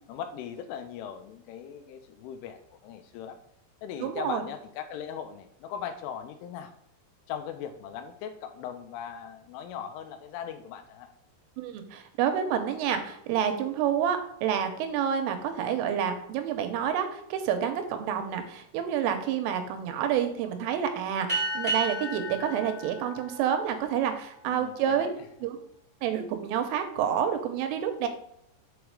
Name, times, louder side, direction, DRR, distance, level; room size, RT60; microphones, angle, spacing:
voice 1, 0.1-3.4 3.8-6.7 7.3-11.1 24.5-25.2, left 8 dB, 80° left, 8 dB, 3.1 m, -39 dB
voice 2, 4.0-4.4 11.6-25.1 25.4-25.6 26.0-28.1, right 8 dB, 90° right, 6 dB, 3.3 m, -28 dB
sound 1, 21.3-24.2, right 2 dB, 30° right, 0.7 m, -33 dB
7.3 x 4.8 x 4.8 m, 0.75 s
omnidirectional pair, 5.8 m